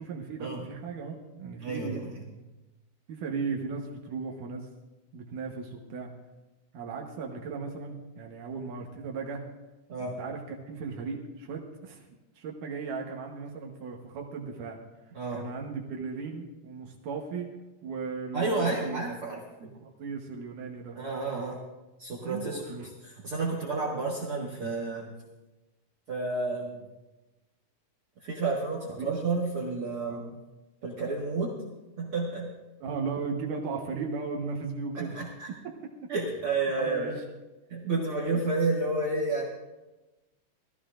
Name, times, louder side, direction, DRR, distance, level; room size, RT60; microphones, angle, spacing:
voice 1, 0.0-2.3 3.1-4.7 5.1-6.1 6.7-9.4 10.0-12.1 12.4-14.8 15.3-17.5 17.8-19.2 19.7-21.0 22.3-22.9 28.9-29.1 30.0-30.3 32.8-35.2 35.6-35.8 36.8-37.2, right 5 dB, 75° right, 1 dB, 2.7 m, -36 dB
voice 2, 1.6-2.0 9.9-10.2 15.1-15.5 18.3-19.4 20.9-21.6 22.0-25.1 26.1-26.8 28.2-30.3 30.8-31.6 32.0-32.5 35.0-35.5 36.1-37.2 37.7-39.4, right 3 dB, 50° right, -5 dB, 2.2 m, -30 dB
20.0 x 14.5 x 2.5 m, 1.1 s
omnidirectional pair, 3.8 m